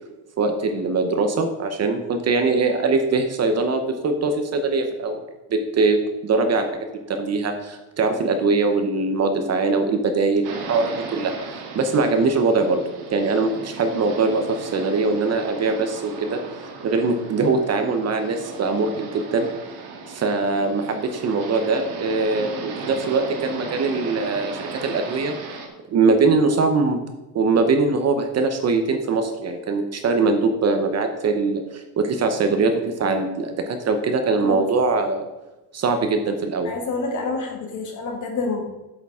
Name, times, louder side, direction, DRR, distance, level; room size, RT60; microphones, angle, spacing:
voice 1, 0.4-5.2 5.5-12.8 13.1-16.4 16.8-19.5 20.1-25.4 25.9-27.0 27.3-35.2 35.7-36.7, right 3 dB, 35° right, 6 dB, 0.8 m, -22 dB
sound 1, 10.4-25.7, right 4 dB, 55° right, 1.7 m, -36 dB
voice 2, 34.4-34.9 36.6-38.6, left 3 dB, 40° left, 2 dB, 1.9 m, -28 dB
8.5 x 6.8 x 3.6 m, 1.1 s
cardioid pair, 140°, 45 cm